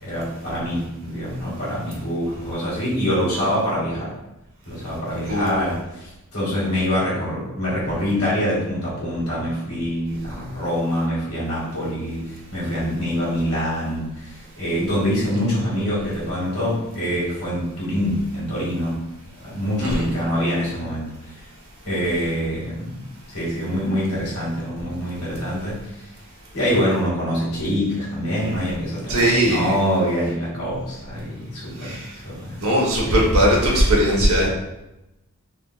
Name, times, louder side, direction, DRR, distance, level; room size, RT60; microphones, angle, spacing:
voice 1, 0.0-4.1 4.6-19.0 19.4-21.3 21.8-26.0 26.5-32.0 32.2-32.6 33.0-33.2, equal, 85° left, -8 dB, 1.5 m, -25 dB
voice 2, 5.3-5.6 19.8-20.1 29.1-29.7 31.8-32.1 32.6-34.5, equal, 70° right, -3 dB, 0.9 m, -19 dB
3.5 x 2.1 x 2.3 m, 0.92 s
head